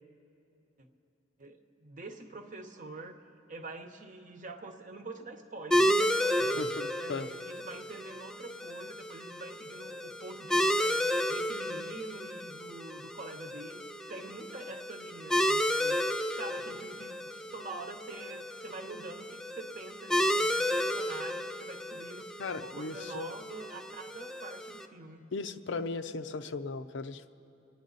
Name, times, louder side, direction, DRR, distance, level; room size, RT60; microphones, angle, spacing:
voice 1, 1.4-3.2 3.5-6.6 7.0-13.8 14.1-16.0 16.3-22.3 22.6-25.2, right 2 dB, 45° right, 6 dB, 0.9 m, -45 dB
sound 1, 5.7-24.9, equal, 5° left, 0.4 m, -32 dB
voice 2, 6.6-7.3 22.4-23.3 25.3-27.3, left 3 dB, 70° left, 10 dB, 0.5 m, -37 dB
28.0 x 9.9 x 4.0 m, 2.9 s
head